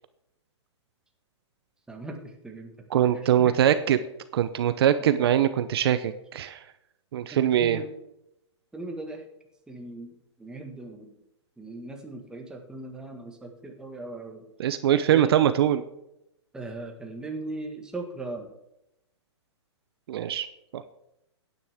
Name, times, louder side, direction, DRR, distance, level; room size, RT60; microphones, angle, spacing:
voice 1, 1.9-3.5 7.3-7.9 8.7-9.2 9.7-10.1 10.4-11.1 11.6-14.5 15.1-15.5 16.5-18.5, right 2 dB, 5° right, 2 dB, 1.6 m, -38 dB
voice 2, 2.9-4.0 4.3-6.6 7.1-7.8 14.6-15.8 20.1-20.5 20.7-20.8, right 10 dB, 55° right, 12 dB, 0.7 m, -22 dB
16.0 x 9.5 x 3.5 m, 0.84 s
hypercardioid pair, 150°, 15 cm